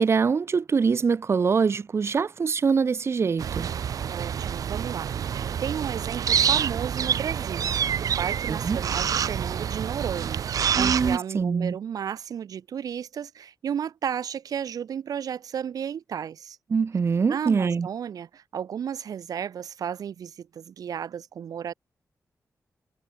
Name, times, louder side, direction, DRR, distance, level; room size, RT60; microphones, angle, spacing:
voice 1, 0.0-3.7 8.5-8.8 10.7-11.8 16.7-17.9, right 5 dB, 45° right, 0.8 m, -24 dB
sound 1, 3.4-11.2, right 8 dB, 70° right, 0.5 m, -27 dB
voice 2, 4.1-7.7 8.2-16.6 17.2-21.7, right 8 dB, 90° right, 1.2 m, -33 dB
wide cardioid pair, 120°, 6 cm